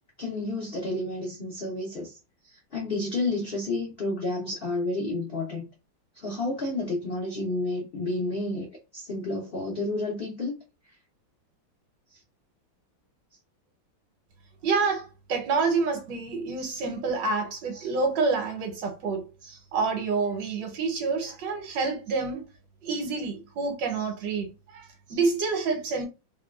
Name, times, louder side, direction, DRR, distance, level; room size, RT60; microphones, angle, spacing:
voice 1, 0.2-2.1 2.5-5.6 6.2-8.7 8.9-10.5, left 2 dB, 70° left, 0.5 m, -30 dB
voice 2, 14.6-22.5 22.8-26.1, right 4 dB, 70° right, 1.4 m, -28 dB
3.2 x 2.2 x 2.2 m
omnidirectional pair, 2.1 m